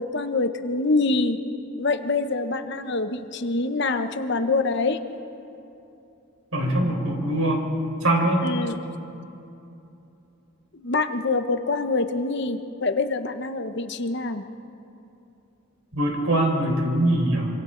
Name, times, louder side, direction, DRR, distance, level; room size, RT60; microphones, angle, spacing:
voice 1, 0.0-1.4 1.8-5.0 8.4-8.8 10.7-14.4, left 3 dB, 50° left, 8 dB, 0.9 m, -25 dB
voice 2, 6.5-7.6 8.0-8.4 15.9-17.5, right 1 dB, 75° right, 0 dB, 4.5 m, -22 dB
26.0 x 26.0 x 3.9 m, 2.8 s
head